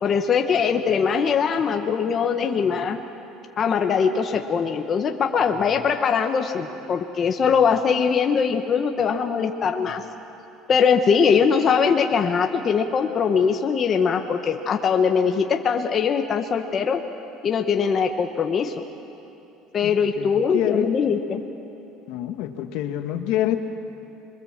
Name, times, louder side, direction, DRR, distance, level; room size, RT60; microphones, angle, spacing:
voice 1, 0.0-3.0 3.6-10.0 10.7-17.0 17.4-18.8 19.7-21.4, left 6 dB, 30° left, 4 dB, 1.1 m, -21 dB
voice 2, 19.8-20.9 22.1-23.6, left 12 dB, 70° left, 6 dB, 1.5 m, -27 dB
26.0 x 22.5 x 7.4 m, 2.9 s
cardioid pair, 155°, 0 cm